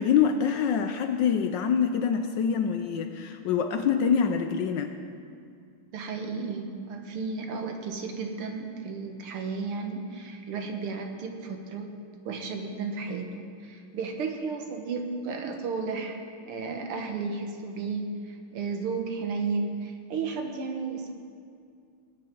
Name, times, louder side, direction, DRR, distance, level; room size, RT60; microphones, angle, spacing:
voice 1, 0.0-4.9, left 7 dB, 70° left, 7 dB, 1.1 m, -25 dB
voice 2, 5.9-11.9 12.3-16.2 16.5-21.1, right 4 dB, 80° right, 4 dB, 2.1 m, -33 dB
19.5 x 8.9 x 4.6 m, 2.3 s
omnidirectional pair, 2.4 m